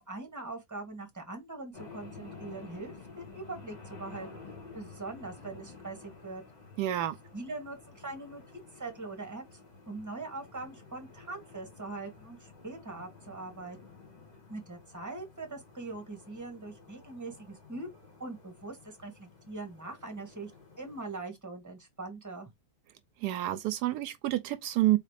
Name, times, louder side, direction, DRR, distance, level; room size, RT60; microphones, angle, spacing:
voice 1, 0.0-6.4 7.3-9.6 9.9-14.0 14.5-20.5 20.8-22.5, right 3 dB, 10° right, 1.6 m, -42 dB
sound 1, 1.7-21.2, left 4 dB, 25° left, 1.7 m, -52 dB
voice 2, 6.8-7.2 23.2-25.0, right 15 dB, 80° right, 1.1 m, -28 dB
4.1 x 3.6 x 3.3 m
omnidirectional pair, 1.7 m